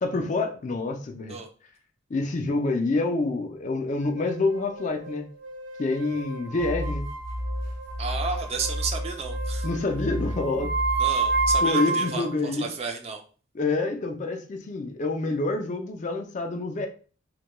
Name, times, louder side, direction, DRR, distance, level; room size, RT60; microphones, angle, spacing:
voice 1, 0.0-1.4 2.1-5.3 5.8-7.1 9.6-10.7 11.6-12.7 13.5-16.9, left 3 dB, 40° left, 0.4 m, -27 dB
sound 1, 4.2-12.3, right 3 dB, 80° right, 1.0 m, -30 dB
sound 2, 6.6-11.6, equal, 55° right, 0.8 m, -32 dB
voice 2, 8.0-9.7 11.0-13.2, right 5 dB, 35° right, 0.4 m, -32 dB
2.2 x 2.2 x 2.9 m
head